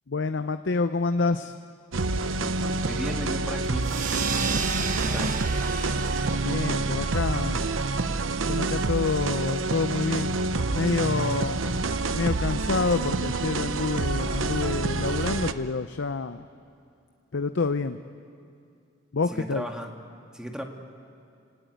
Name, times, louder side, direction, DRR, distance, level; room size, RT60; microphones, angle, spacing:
voice 1, 0.1-1.5 6.4-7.6 8.5-10.4 10.7-11.6 12.1-16.5 17.3-18.0 19.1-19.6, left 4 dB, 65° left, 10 dB, 0.7 m, -27 dB
sound 1, 1.9-15.5, right 3 dB, 90° right, 0.8 m, -27 dB
voice 2, 2.8-3.9 5.0-5.5 19.3-19.9 20.3-20.6, equal, 5° right, 3 dB, 1.9 m, -35 dB
sound 2, 3.8-8.9, right 4 dB, 40° right, 1.2 m, -33 dB
29.5 x 17.5 x 9.2 m, 2.5 s
head